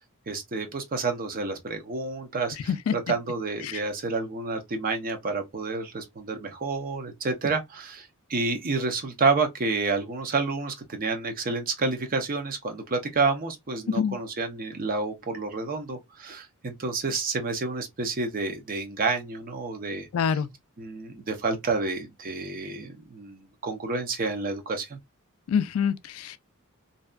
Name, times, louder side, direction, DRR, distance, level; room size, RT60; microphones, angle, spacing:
voice 1, 0.3-20.4 20.8-25.0, right 3 dB, 40° right, 0.6 m, -29 dB
voice 2, 20.1-20.5 25.5-26.4, left 7 dB, 75° left, 0.3 m, -25 dB
2.6 x 2.2 x 2.3 m
head